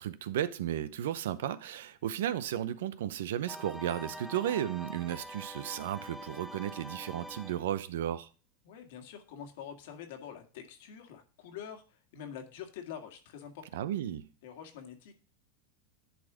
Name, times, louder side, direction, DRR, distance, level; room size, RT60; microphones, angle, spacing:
voice 1, 0.0-8.3 13.7-14.3, right 11 dB, 85° right, 0.7 m, -34 dB
sound 1, 3.5-7.8, equal, ahead, 0.5 m, -45 dB
voice 2, 8.6-13.8 14.4-15.2, left 8 dB, 75° left, 1.9 m, -46 dB
10.5 x 4.2 x 5.0 m
supercardioid pair, 125°, 0 cm